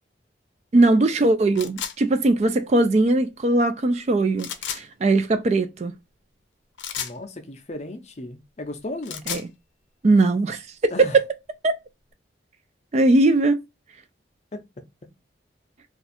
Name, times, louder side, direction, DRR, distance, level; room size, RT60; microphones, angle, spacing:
voice 1, 0.7-5.9 9.3-9.4 10.0-10.6 11.6-11.8 12.9-13.6, right 2 dB, 35° right, 0.3 m, -20 dB
sound 1, 1.6-2.0 4.4-4.8 6.8-7.2 8.9-9.5, left 8 dB, 80° left, 0.5 m, -32 dB
voice 2, 7.0-9.3 10.9-11.2 14.5-14.6, left 2 dB, 35° left, 0.5 m, -35 dB
2.5 x 2.3 x 4.1 m
head